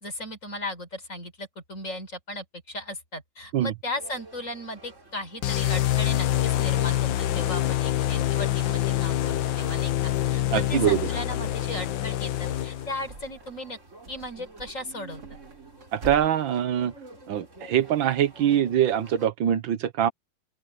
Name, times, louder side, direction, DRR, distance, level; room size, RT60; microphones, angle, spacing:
voice 1, 0.0-13.8 14.1-15.2, left 1 dB, 40° left, 5.3 m, -36 dB
sound 1, 3.8-19.3, right 2 dB, 40° right, 4.5 m, -51 dB
sound 2, 5.4-13.1, left 13 dB, 80° left, 1.6 m, -26 dB
voice 2, 10.5-11.0 15.9-16.9 17.3-20.1, right 10 dB, 80° right, 1.8 m, -23 dB
sound 3, 11.4-11.9 12.3-13.7 14.0-16.3, right 3 dB, 55° right, 2.9 m, -45 dB
open air
omnidirectional pair, 2.1 m